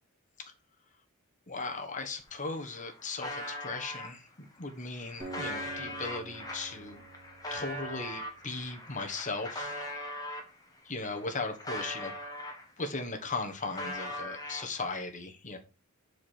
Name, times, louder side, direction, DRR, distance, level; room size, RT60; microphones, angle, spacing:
voice 1, 1.5-7.0 7.5-9.7 10.8-12.1 12.8-15.6, left 3 dB, 35° left, 4 dB, 1.4 m, -37 dB
sound 1, 2.2-2.3 2.5-4.1 4.7-10.5 11.0-12.9 13.2-15.0, left 1 dB, 15° left, 1.7 m, -40 dB
Acoustic guitar, 5.2-8.8, right 3 dB, 30° right, 4.1 m, -47 dB
6.7 x 4.9 x 4.5 m, 0.30 s
head